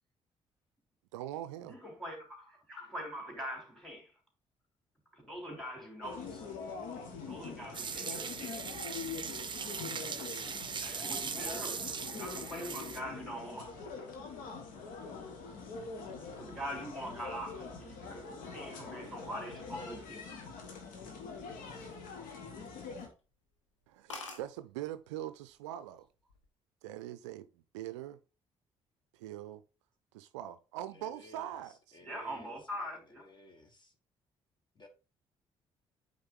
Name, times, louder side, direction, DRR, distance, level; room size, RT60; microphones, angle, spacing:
voice 1, 1.1-1.7 23.9-26.1 26.8-28.2 29.1-29.6 30.1-32.0, right 12 dB, 75° right, 0.4 m, -42 dB
voice 2, 1.7-4.1 5.1-6.5 7.3-8.7 10.5-13.8 16.4-20.4 32.0-33.3, equal, 5° left, 3.3 m, -43 dB
sound 1, 6.0-23.1, left 5 dB, 60° left, 1.6 m, -44 dB
sound 2, 7.7-13.0, right 6 dB, 30° right, 0.7 m, -39 dB
sound 3, 21.6-22.6 23.0-23.2 23.6-23.7 23.8-23.9 24.1-24.5 25.4-25.7 26.0-26.5, left 3 dB, 85° left, 1.1 m, -46 dB
voice 3, 30.9-32.9 33.2-33.9 34.7-34.9, left 2 dB, 30° left, 1.5 m, -57 dB
8.7 x 3.7 x 3.6 m
figure-of-eight pair, 45°, 16 cm